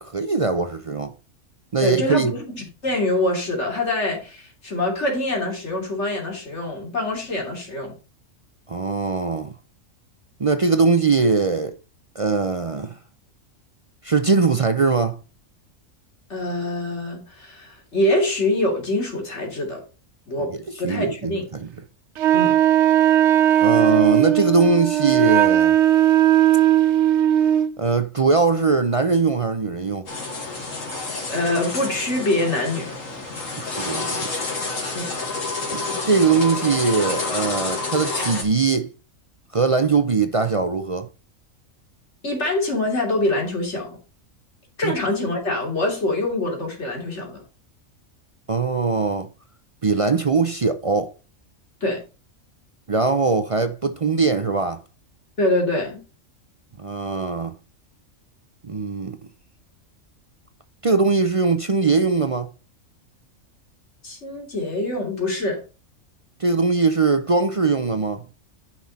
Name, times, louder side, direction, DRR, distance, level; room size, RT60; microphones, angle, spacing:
voice 1, 0.0-1.1 1.7-2.3 8.7-9.5 10.4-11.7 12.2-13.0 14.0-15.2 20.8-21.7 23.6-25.8 27.8-30.1 33.7-34.3 35.7-38.9 39.5-41.1 44.8-45.0 48.5-49.3 49.8-51.1 52.9-54.8 56.8-57.6 58.6-59.2 60.8-62.5 66.4-68.2, right 4 dB, 45° right, 0.4 m, -21 dB
voice 2, 1.8-7.9 16.3-19.8 20.3-20.5 20.8-21.5 22.3-22.6 31.3-32.9 34.9-35.1 42.2-44.0 44.8-47.4 51.8-52.0 55.4-56.0 64.0-65.6, left 1 dB, 60° left, 3.3 m, -24 dB
Wind instrument woodwind instrument, 22.2-27.7, right 11 dB, 65° right, 0.9 m, -17 dB
sound 1, 30.1-38.4, left 3 dB, 75° left, 2.6 m, -29 dB
9.8 x 5.9 x 4.2 m
omnidirectional pair, 1.4 m